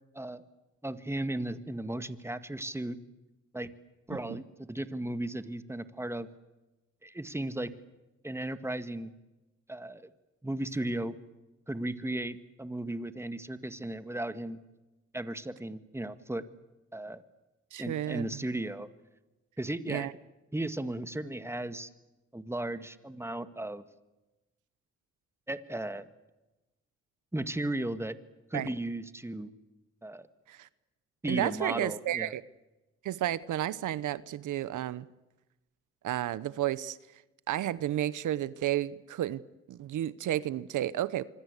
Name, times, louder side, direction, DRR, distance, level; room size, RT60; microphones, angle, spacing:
voice 1, 0.8-3.0 3.5-3.7 4.1-6.3 7.0-7.7 8.2-9.1 9.7-10.1 10.4-11.2 11.7-14.6 15.1-16.4 16.9-17.2 17.8-18.9 19.6-20.1 20.5-21.9 22.3-23.8 25.5-26.1 27.3-28.2 28.5-29.5 30.0-30.3 31.2-32.3, right 1 dB, 10° right, 11 dB, 1.9 m, -35 dB
voice 2, 17.7-18.4 19.9-20.1 28.5-28.7 30.5-30.7 31.3-32.4 33.0-35.1 36.0-37.0 37.5-39.4 39.7-41.2, right 12 dB, 80° right, 18 dB, 1.0 m, -32 dB
25.5 x 25.0 x 8.3 m, 1.0 s
cardioid pair, 75°, 30 cm